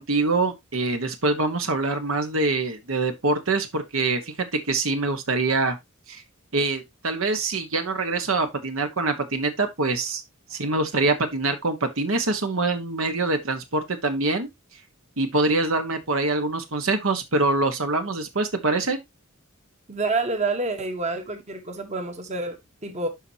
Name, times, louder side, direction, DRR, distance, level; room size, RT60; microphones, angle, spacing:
voice 1, 0.0-4.3 4.7-5.8 6.1-6.2 6.5-10.2 10.5-14.5 15.2-19.0, right 3 dB, 70° right, 1.4 m, -24 dB
voice 2, 19.9-23.1, right 3 dB, 35° right, 1.3 m, -28 dB
12.0 x 4.3 x 2.9 m
head